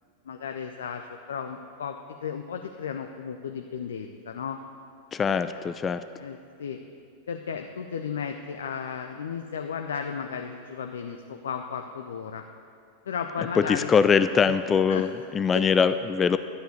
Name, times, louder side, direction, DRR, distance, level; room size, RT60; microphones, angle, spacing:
voice 1, 0.3-4.6 5.3-5.6 6.2-6.8 7.3-12.4 13.1-13.9 14.9-15.0 15.5-15.6, left 7 dB, 65° left, 5 dB, 0.6 m, -34 dB
voice 2, 5.1-6.0 13.6-16.4, left 6 dB, 20° left, 12 dB, 0.4 m, -22 dB
12.0 x 8.0 x 8.2 m, 2.4 s
figure-of-eight pair, 90°, 0 cm